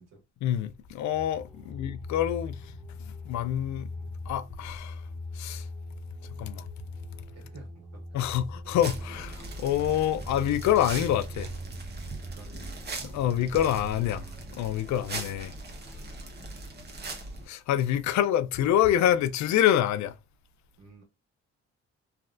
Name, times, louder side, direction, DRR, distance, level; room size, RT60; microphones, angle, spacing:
voice 1, 0.4-2.6 3.0-3.9 4.3-5.0 5.3-5.7 6.4-6.6 8.1-11.5 13.0-14.2 14.6-15.5 17.5-20.2, left 11 dB, 70° left, 0.5 m, -26 dB
sound 1, 1.1-14.5, left 1 dB, 5° right, 1.0 m, -41 dB
voice 2, 1.6-1.9 7.3-8.1 12.2-12.8 20.8-21.0, right 3 dB, 60° right, 1.6 m, -52 dB
sound 2, 8.8-17.5, right 2 dB, 35° right, 1.0 m, -40 dB
3.3 x 2.3 x 2.4 m
cardioid pair, 90°, 30 cm